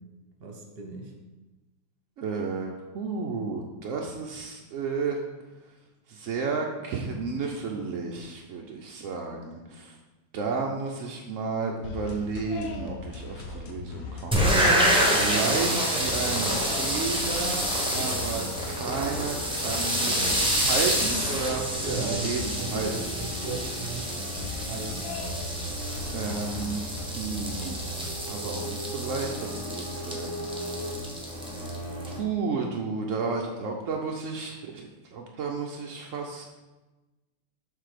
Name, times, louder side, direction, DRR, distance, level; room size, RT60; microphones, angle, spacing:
voice 1, 0.4-1.1 21.8-22.3 22.6-25.1, right 4 dB, 40° right, 1 dB, 1.0 m, -37 dB
voice 2, 2.2-5.2 6.1-9.9 10.3-14.9 15.2-17.7 17.9-23.1 26.1-26.8 27.2-27.8 28.3-30.3 32.2-36.6, right 4 dB, 75° right, 0 dB, 0.7 m, -32 dB
sound 1, 11.8-28.5, left 4 dB, 60° left, 1.0 m, -40 dB
sound 2, 14.3-32.2, equal, 5° right, 0.6 m, -28 dB
sound 3, 15.0-26.5 27.2-31.0, right 1 dB, 15° left, 1.4 m, -44 dB
6.7 x 3.7 x 4.9 m, 1.1 s
omnidirectional pair, 2.1 m